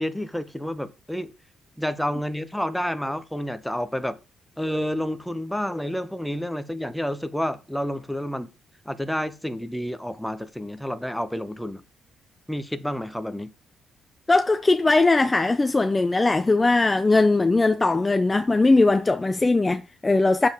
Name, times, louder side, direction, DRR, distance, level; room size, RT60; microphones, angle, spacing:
voice 1, 0.0-1.3 1.8-4.2 4.6-8.5 8.8-11.8 12.5-13.5, equal, 5° left, 0.9 m, -29 dB
voice 2, 14.3-20.5, left 3 dB, 20° left, 0.6 m, -20 dB
8.8 x 7.2 x 3.5 m
cardioid pair, 90°, 0 cm